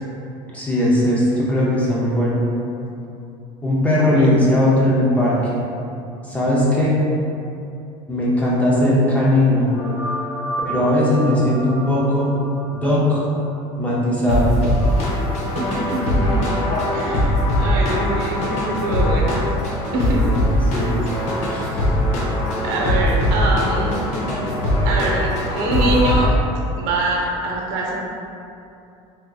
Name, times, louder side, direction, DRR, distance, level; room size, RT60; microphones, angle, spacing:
voice 1, 0.5-2.5 3.6-5.7 6.2-7.1 8.1-9.7 10.7-12.3 12.7-13.2 13.8-14.6 20.7-21.0 21.5-21.7 22.5-22.6, left 1 dB, 10° left, -7 dB, 0.6 m, -18 dB
voice 2, 4.0-4.3 15.5-16.4 16.9-19.4 19.9-20.3 20.8-21.0 22.6-24.0 24.8-26.3 26.8-28.0, right 2 dB, 80° right, -2 dB, 0.7 m, -24 dB
sound 1, 9.7-12.4 12.8-12.9 14.3-26.3, left 1 dB, 65° left, 0.7 m, -21 dB
3.5 x 2.8 x 2.3 m, 2.6 s
cardioid pair, 145°, 13 cm